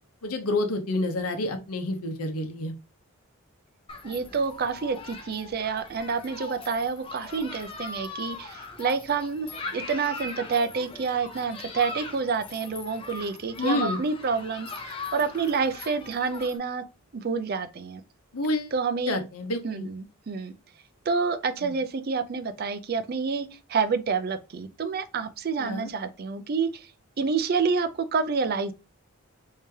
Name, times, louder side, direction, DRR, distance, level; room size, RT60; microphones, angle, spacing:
voice 1, 0.2-2.7 13.6-14.0 18.3-18.7 19.1-19.9 21.6-21.8 25.6-25.9, left 2 dB, 90° left, 0.8 m, -29 dB
Human group actions, 3.9-16.6, left 3 dB, 25° left, 0.5 m, -39 dB
voice 2, 4.0-16.8 17.1-18.0 18.7-19.2 19.6-20.5 21.1-26.9 27.2-28.7, right 5 dB, 45° right, 0.4 m, -28 dB
3.2 x 2.8 x 3.4 m
head